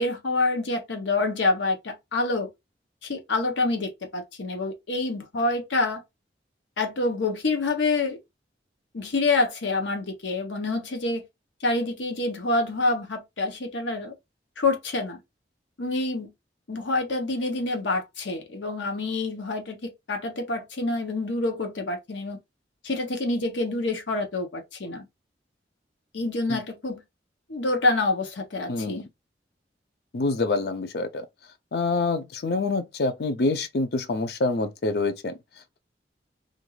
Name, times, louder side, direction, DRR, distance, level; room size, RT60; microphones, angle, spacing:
voice 1, 0.0-2.5 3.0-6.0 6.8-8.2 8.9-11.2 11.6-14.1 14.6-15.2 15.8-16.3 16.7-22.4 22.8-25.0 26.1-27.0 27.5-29.0, left 2 dB, 85° left, 0.8 m, -27 dB
voice 2, 28.7-29.0 30.1-31.2 31.7-35.3, left 3 dB, 60° left, 0.5 m, -26 dB
2.5 x 2.3 x 3.0 m
head